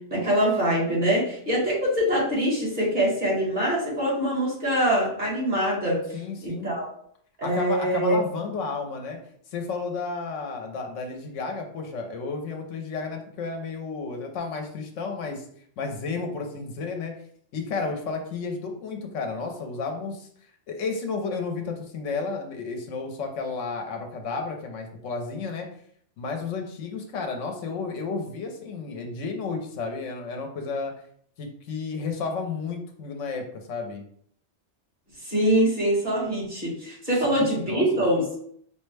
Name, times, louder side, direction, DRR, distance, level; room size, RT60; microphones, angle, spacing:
voice 1, 0.1-6.0 6.4-6.9 7.4-8.2 35.3-38.2, equal, 40° right, -6 dB, 1.9 m, -24 dB
voice 2, 6.1-6.7 7.4-9.2 9.5-15.4 15.8-17.1 17.5-20.3 20.7-25.7 26.2-30.9 31.4-34.0 37.2-38.1, left 4 dB, 85° left, 3 dB, 1.1 m, -32 dB
5.0 x 2.1 x 3.2 m, 0.64 s
omnidirectional pair, 1.3 m